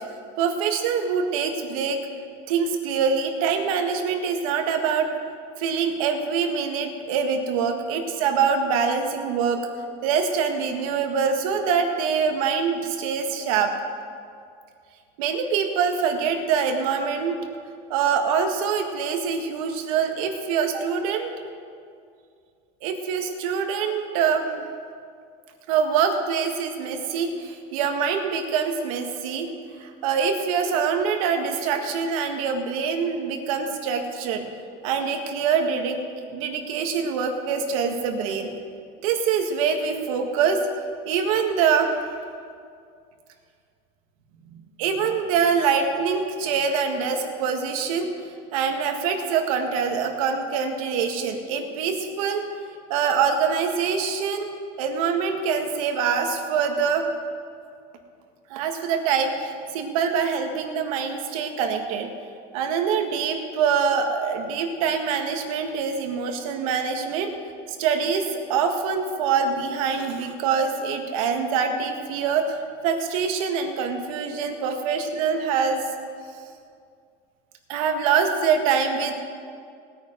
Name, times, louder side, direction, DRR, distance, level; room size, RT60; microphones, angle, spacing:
voice 1, 0.4-2.0 2.5-5.1 5.6-9.7 10.0-13.7 15.2-17.4 17.9-21.3 22.8-24.7 25.7-29.5 29.8-34.5 34.8-36.0 36.3-38.5 39.0-40.6 41.1-42.0 44.5-48.1 48.5-52.5 52.9-54.5 54.8-57.1 58.5-62.1 62.5-67.3 67.7-72.6 72.8-75.8 77.7-79.1, right 6 dB, 75° right, 4 dB, 1.7 m, -24 dB
19.5 x 9.4 x 5.1 m, 2.3 s
cardioid pair, 160°, 18 cm